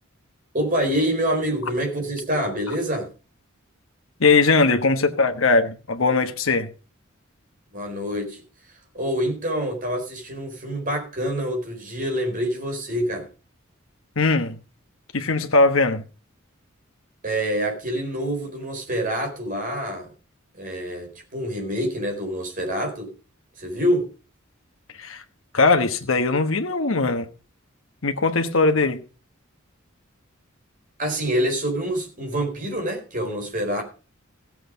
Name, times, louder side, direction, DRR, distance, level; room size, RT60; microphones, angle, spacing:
voice 1, 0.5-3.1 7.7-8.4 8.9-13.3 17.2-20.1 20.6-23.1 23.6-24.1 31.0-33.8, equal, 40° right, 4.5 m, -26 dB
voice 2, 4.2-6.7 14.2-14.6 15.1-16.0 25.0-25.2 25.5-27.3 28.0-29.0, left 3 dB, 70° left, 1.2 m, -20 dB
16.0 x 7.7 x 5.1 m
head